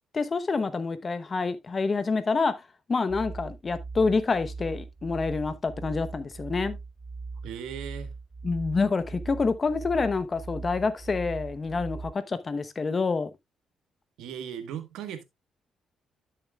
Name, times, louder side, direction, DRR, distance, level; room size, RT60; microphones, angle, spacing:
voice 1, 0.1-2.5 2.9-6.8 8.4-13.3, left 4 dB, 35° left, 0.9 m, -27 dB
sound 1, 3.1-12.1, right 4 dB, 35° right, 1.4 m, -40 dB
voice 2, 7.4-8.1 14.2-15.2, right 8 dB, 90° right, 1.4 m, -37 dB
11.5 x 6.8 x 2.3 m
cardioid pair, 90°, 0 cm